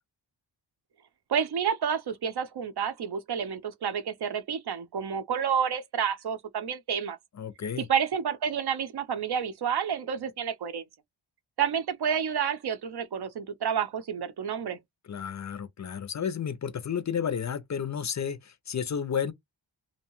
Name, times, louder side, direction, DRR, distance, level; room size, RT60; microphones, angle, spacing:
voice 1, 1.3-7.2 7.8-10.8 11.6-14.8, right 7 dB, 60° right, 0.6 m, -29 dB
voice 2, 7.4-7.9 15.1-19.3, left 7 dB, 40° left, 0.4 m, -32 dB
2.7 x 2.2 x 2.9 m
wide cardioid pair, 105°, 45 cm